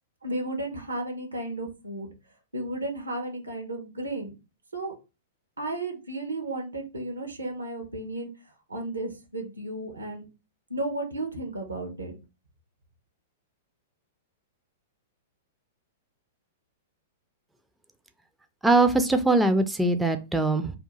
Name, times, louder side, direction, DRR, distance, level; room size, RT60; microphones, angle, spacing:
voice 1, 0.2-2.1 2.5-4.3 4.7-4.9 5.6-8.3 8.7-10.3 10.7-12.2, right 2 dB, 80° right, 3 dB, 0.9 m, -33 dB
voice 2, 18.6-20.7, right 2 dB, 5° right, 8 dB, 0.3 m, -22 dB
2.8 x 2.3 x 3.9 m, 0.28 s
figure-of-eight pair, 100°, 0 cm